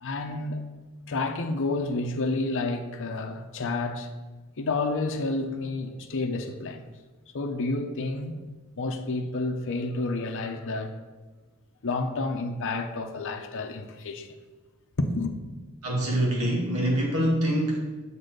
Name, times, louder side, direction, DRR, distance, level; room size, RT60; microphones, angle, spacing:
voice 1, 0.0-0.6 1.1-4.1 4.6-6.9 7.3-8.4 8.8-10.9 11.8-14.4 15.0-15.3, left 2 dB, 60° left, 0.7 m, -30 dB
voice 2, 15.8-18.0, right 1 dB, 80° right, 2.1 m, -25 dB
7.1 x 4.1 x 6.5 m
head